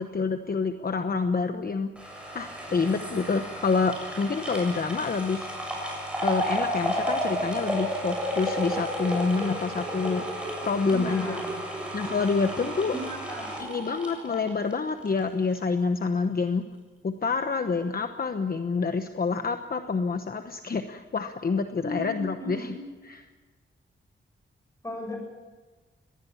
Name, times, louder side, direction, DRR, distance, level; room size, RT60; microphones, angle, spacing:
voice 1, 0.0-1.9 2.3-5.5 6.2-10.2 10.6-11.4 11.9-13.0 13.6-16.6 17.0-22.7 23.1-23.3, left 4 dB, 45° left, 7 dB, 1.1 m, -27 dB
sound 1, 2.0-15.2 15.5-15.6, equal, 5° right, 7.5 m, -32 dB
voice 2, 10.9-11.6 12.9-13.5 21.8-22.8 24.8-25.2, equal, 15° left, 2 dB, 8.0 m, -36 dB
23.5 x 19.0 x 7.3 m, 1.3 s
wide cardioid pair, 120°, 21 cm